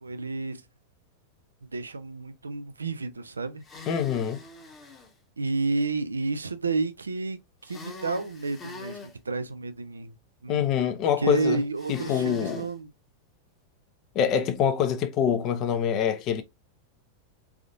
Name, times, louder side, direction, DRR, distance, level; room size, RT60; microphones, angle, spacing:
voice 1, 0.0-0.6 1.7-3.9 5.4-10.1 10.4-10.7 11.2-12.9, right 3 dB, 75° right, 0.5 m, -31 dB
sound 1, 3.6-5.1 7.6-9.1 11.8-12.7, left 3 dB, 20° left, 1.2 m, -43 dB
voice 2, 3.9-4.4 10.5-11.6 11.9-12.6 14.1-16.4, left 8 dB, 35° left, 0.7 m, -25 dB
3.7 x 3.5 x 2.5 m
figure-of-eight pair, 90°, 0 cm